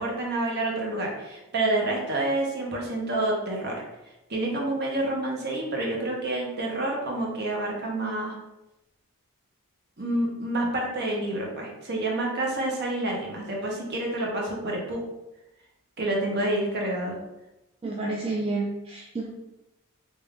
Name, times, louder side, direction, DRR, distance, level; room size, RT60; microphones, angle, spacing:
voice 1, 0.0-3.7 4.3-8.3 10.0-15.0 16.0-17.2, right 2 dB, 45° right, -1 dB, 0.8 m, -28 dB
voice 2, 17.8-19.3, right 2 dB, 25° right, -2 dB, 0.3 m, -30 dB
3.6 x 2.6 x 3.4 m, 0.95 s
head